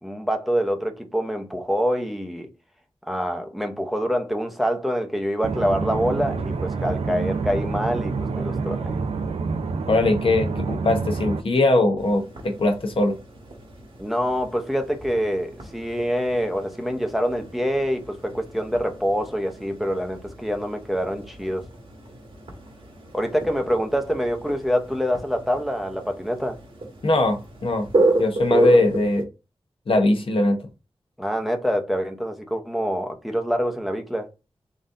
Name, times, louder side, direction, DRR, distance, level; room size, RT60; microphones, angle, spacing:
voice 1, 0.0-2.5 3.0-8.9 14.0-21.6 23.1-26.6 31.2-34.3, equal, ahead, 0.7 m, -25 dB
sound 1, 5.4-11.4, right 4 dB, 90° right, 0.5 m, -27 dB
voice 2, 9.9-13.2 27.0-27.9 28.2-29.2 29.9-30.6, left 2 dB, 65° left, 1.0 m, -21 dB
sound 2, 12.0-29.2, right 2 dB, 65° right, 1.5 m, -31 dB
4.1 x 2.6 x 3.7 m
wide cardioid pair, 70°, 10 cm